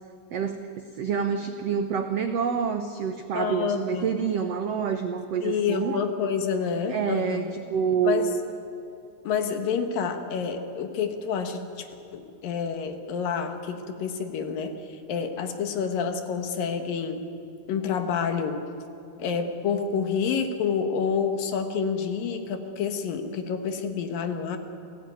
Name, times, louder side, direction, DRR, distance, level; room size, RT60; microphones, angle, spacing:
voice 1, 0.3-6.0 6.9-8.3, right 7 dB, 75° right, 8 dB, 1.4 m, -27 dB
voice 2, 3.3-4.1 5.4-7.5 8.0-8.3 9.2-11.9 12.1-17.3 17.7-18.7 19.2-24.6, left 6 dB, 70° left, 7 dB, 3.2 m, -28 dB
29.0 x 17.0 x 9.4 m, 2.6 s
omnidirectional pair, 4.3 m